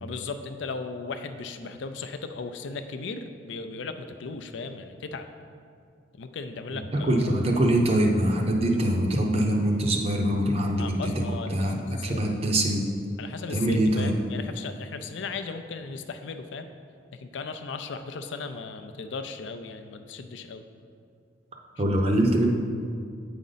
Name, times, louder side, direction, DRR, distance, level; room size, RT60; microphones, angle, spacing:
voice 1, 0.0-5.3 6.2-7.3 10.8-11.7 12.0-12.2 13.2-16.7 17.1-20.6, left 4 dB, 65° left, 9 dB, 0.4 m, -36 dB
voice 2, 6.9-11.1 11.5-12.8 13.5-14.1 21.8-22.5, right 1 dB, 30° right, 1 dB, 0.6 m, -23 dB
8.3 x 5.1 x 3.9 m, 2.3 s
head